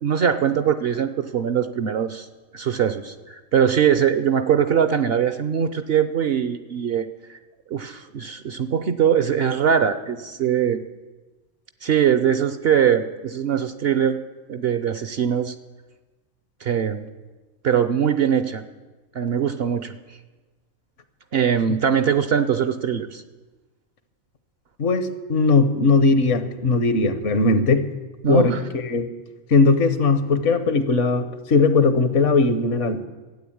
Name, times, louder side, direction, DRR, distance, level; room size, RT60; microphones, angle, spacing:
voice 1, 0.0-2.3 2.5-7.4 7.7-10.8 11.8-14.2 14.5-15.5 16.6-17.1 17.6-18.6 19.1-19.9 21.3-23.2 28.2-28.6, right 8 dB, 55° right, 11 dB, 0.8 m, -21 dB
voice 2, 24.8-27.8 28.3-29.0 29.5-33.1, left 3 dB, 65° left, 11 dB, 1.3 m, -19 dB
13.0 x 9.0 x 8.6 m, 1.2 s
omnidirectional pair, 1.4 m